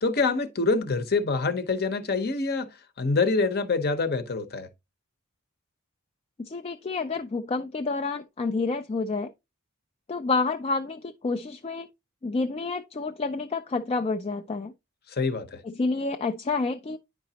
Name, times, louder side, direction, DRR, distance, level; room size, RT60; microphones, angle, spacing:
voice 1, 0.0-4.7 15.1-15.6, left 3 dB, 45° left, 0.8 m, -26 dB
voice 2, 6.4-9.3 10.1-11.9 12.2-14.7 15.6-17.0, left 3 dB, 25° left, 0.4 m, -29 dB
9.7 x 4.9 x 2.8 m
head